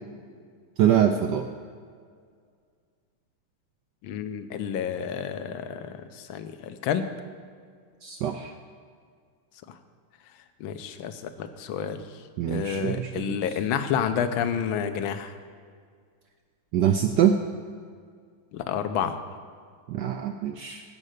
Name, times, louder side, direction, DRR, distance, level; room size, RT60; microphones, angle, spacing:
voice 1, 0.8-1.5 8.0-8.5 12.4-13.2 16.7-17.4 19.9-20.8, right 9 dB, 80° right, 6 dB, 0.9 m, -24 dB
voice 2, 4.0-7.1 9.7-9.8 10.6-15.4 18.5-19.2, left 8 dB, 70° left, 10 dB, 1.4 m, -30 dB
15.0 x 5.4 x 6.4 m, 2.1 s
omnidirectional pair, 2.4 m